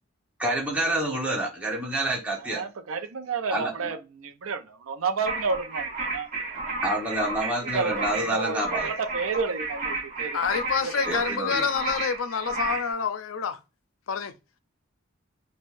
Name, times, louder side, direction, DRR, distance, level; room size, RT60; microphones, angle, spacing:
voice 1, 0.4-2.6 3.5-4.0 6.8-8.9 11.1-11.6, right 1 dB, 5° right, 1.2 m, -28 dB
voice 2, 2.4-6.3 7.7-10.4 10.8-11.2, right 4 dB, 80° right, 0.5 m, -31 dB
sound 1, 5.3-12.9, right 3 dB, 45° right, 1.1 m, -32 dB
voice 3, 10.3-13.6 14.1-14.3, left 6 dB, 80° left, 0.5 m, -27 dB
5.3 x 2.2 x 2.6 m
head